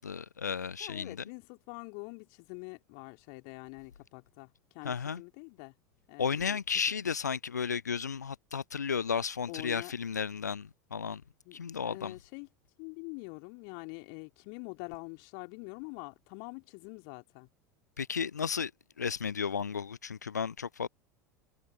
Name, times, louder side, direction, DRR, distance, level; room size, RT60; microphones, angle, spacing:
voice 1, 0.0-1.2 4.8-5.2 6.2-11.2 11.5-12.1 18.0-18.7 19.0-20.9, left 6 dB, 75° left, 0.6 m, -33 dB
voice 2, 0.8-5.8 6.1-6.6 9.5-9.9 11.4-11.6 11.8-12.5 12.8-17.5, left 40 dB or more, 50° left, 2.9 m, -45 dB
figure-of-eight pair, 75°, 9 cm